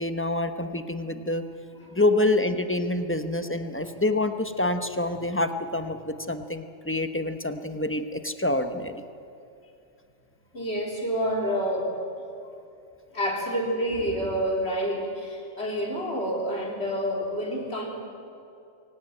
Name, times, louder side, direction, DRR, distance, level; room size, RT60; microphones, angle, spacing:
voice 1, 0.0-1.4 1.9-9.0, left 2 dB, 10° left, 8 dB, 1.0 m, -27 dB
voice 2, 10.5-11.9 13.1-17.9, equal, 50° left, 0 dB, 4.1 m, -28 dB
23.0 x 17.5 x 9.1 m, 2.6 s
omnidirectional pair, 1.4 m